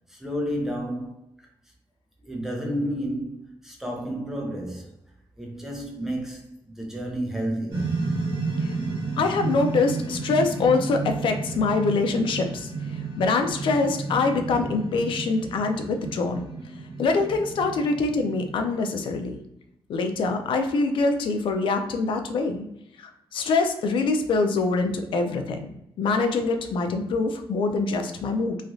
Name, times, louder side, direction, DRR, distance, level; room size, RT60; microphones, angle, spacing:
voice 1, 0.1-1.5 2.2-5.0 5.4-8.0, equal, 5° right, 0.5 m, -31 dB
sound 1, 7.7-19.1, right 3 dB, 70° right, 1.3 m, -32 dB
voice 2, 9.2-16.4 17.0-19.4 19.9-22.7 23.0-25.7 26.0-28.6, left 3 dB, 60° left, 0.4 m, -24 dB
3.1 x 2.3 x 2.6 m
wide cardioid pair, 165°, 10 cm